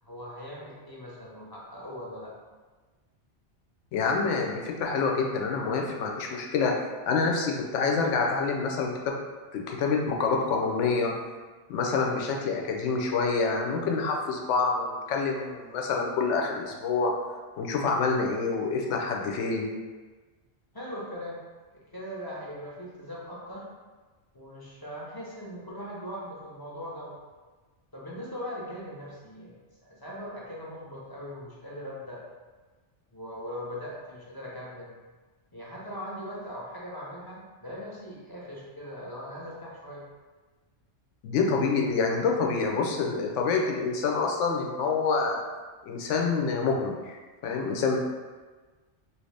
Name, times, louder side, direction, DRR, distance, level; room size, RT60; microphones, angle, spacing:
voice 1, 0.0-2.3 20.7-21.4 21.7-23.7 24.3-27.2 27.9-29.6 29.8-32.2 33.1-34.9 35.5-40.1, equal, 30° left, -6 dB, 0.5 m, -40 dB
voice 2, 3.9-6.7 7.1-9.1 9.5-11.1 11.7-17.1 17.6-19.7 41.2-45.4 45.9-48.0, left 4 dB, 90° left, 1 dB, 0.9 m, -27 dB
3.0 x 2.7 x 3.2 m, 1.3 s
omnidirectional pair, 1.2 m